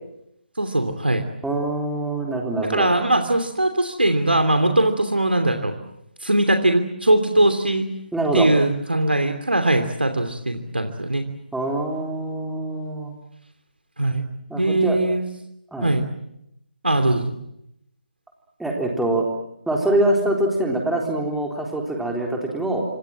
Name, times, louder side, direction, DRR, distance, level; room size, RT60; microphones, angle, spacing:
voice 1, 0.6-1.2 2.7-5.7 6.2-7.9 8.3-11.3 14.0-14.3 14.5-15.3 15.8-16.1 16.8-17.4, right 1 dB, 75° right, 6 dB, 2.9 m, -20 dB
voice 2, 1.4-2.9 8.1-8.5 11.5-13.1 14.5-15.0 15.7-15.9 18.6-19.3 19.7-22.8, right 1 dB, ahead, 0 dB, 3.8 m, -24 dB
28.0 x 25.5 x 7.5 m, 0.81 s
figure-of-eight pair, 145°, 6 cm